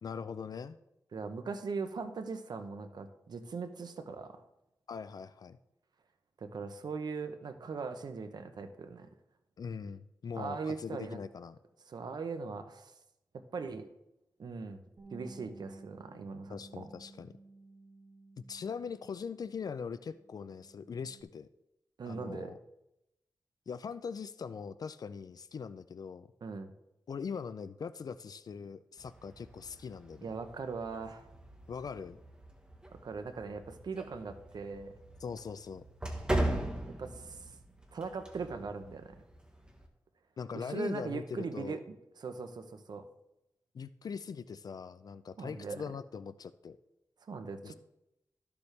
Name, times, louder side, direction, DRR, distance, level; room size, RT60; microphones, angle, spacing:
voice 1, 0.0-0.8 4.9-5.6 9.6-11.6 16.5-17.3 18.5-21.5 22.1-22.6 23.7-26.3 27.1-30.3 31.7-32.2 35.2-35.8 40.4-41.8 43.7-46.8 47.6-47.7, left 6 dB, 65° left, 14 dB, 0.3 m, -41 dB
voice 2, 1.1-4.4 6.4-9.1 10.3-11.2 11.9-12.9 13.5-13.9 14.4-14.8 15.1-16.9 22.0-22.6 26.4-26.7 30.2-31.3 33.0-34.9 37.0-37.6 37.9-39.2 40.5-43.1 45.4-45.8 47.3-47.7, right 4 dB, 75° right, 8 dB, 0.8 m, -40 dB
Bass guitar, 15.0-19.7 20.0-21.2, right 3 dB, 45° right, 2.4 m, -54 dB
sound 1, 29.0-39.9, right 1 dB, 10° right, 1.2 m, -40 dB
13.0 x 6.9 x 3.3 m, 0.89 s
wide cardioid pair, 105°, 7 cm